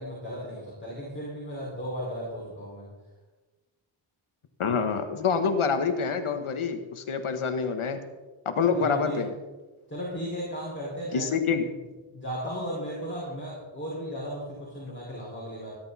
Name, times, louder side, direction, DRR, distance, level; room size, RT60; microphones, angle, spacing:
voice 1, 0.0-2.9 8.7-9.2 9.9-11.3 12.1-15.7, equal, 25° left, -7 dB, 5.2 m, -35 dB
voice 2, 4.6-8.0 8.4-9.3 11.1-11.6, left 5 dB, 85° left, 7 dB, 1.4 m, -26 dB
20.0 x 11.5 x 4.2 m, 1.2 s
wide cardioid pair, 105°, 49 cm